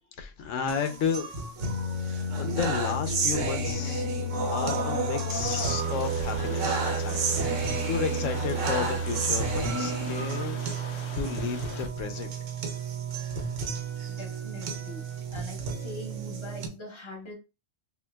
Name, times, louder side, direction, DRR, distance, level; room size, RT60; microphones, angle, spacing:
voice 1, 0.2-1.3 2.4-4.1 4.5-10.6 11.2-12.3, left 6 dB, 90° left, 1.0 m, -32 dB
sound 1, 0.7-16.7, right 3 dB, 80° right, 1.1 m, -30 dB
sound 2, 5.5-11.9, left 3 dB, 65° left, 0.9 m, -41 dB
voice 2, 14.1-17.3, left 1 dB, 25° left, 1.2 m, -43 dB
5.8 x 2.2 x 2.2 m
omnidirectional pair, 1.3 m